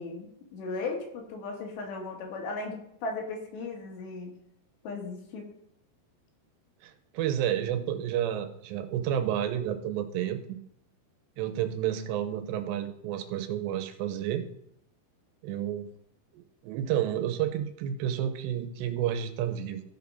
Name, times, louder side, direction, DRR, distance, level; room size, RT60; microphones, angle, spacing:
voice 1, 0.0-4.3 4.8-5.5, left 3 dB, 80° left, 1 dB, 3.9 m, -36 dB
voice 2, 6.8-10.6 11.4-14.5 15.4-15.9 16.3-19.8, right 10 dB, 85° right, 8 dB, 3.0 m, -30 dB
13.5 x 4.5 x 5.4 m, 0.75 s
omnidirectional pair, 5.0 m